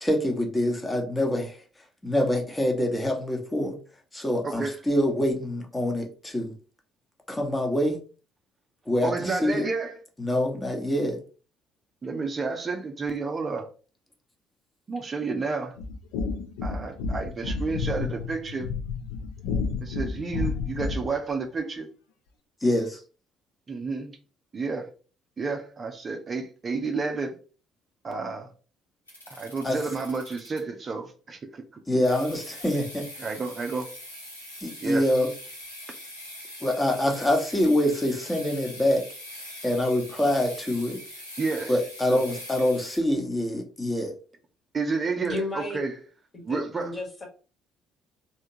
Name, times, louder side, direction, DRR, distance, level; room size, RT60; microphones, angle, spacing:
voice 1, 0.0-1.6 2.0-3.7 4.1-6.5 7.3-8.0 8.9-9.7 10.2-11.2 22.6-23.0 29.6-29.8 31.9-33.1 34.6-35.3 36.6-39.0 39.6-41.0 41.7-44.1, left 1 dB, 15° left, 1.0 m, -25 dB
voice 2, 4.4-4.8 9.0-10.0 12.0-13.7 14.9-15.8 16.6-18.7 19.8-21.9 23.7-24.2 24.5-24.9 25.4-27.3 28.0-28.5 29.3-31.8 33.2-33.9 34.8-35.0 41.4-41.8 42.1-42.2 44.7-45.4 45.7-46.0 46.4-46.9, right 4 dB, 30° right, 0.5 m, -30 dB
sound 1, 15.8-21.2, left 4 dB, 65° left, 0.5 m, -31 dB
sound 2, 29.1-30.8 32.0-43.0, left 1 dB, 85° left, 0.8 m, -42 dB
voice 3, 45.3-45.8 46.5-47.3, left 2 dB, 30° left, 1.3 m, -33 dB
3.4 x 2.7 x 2.7 m
figure-of-eight pair, 50°, 0 cm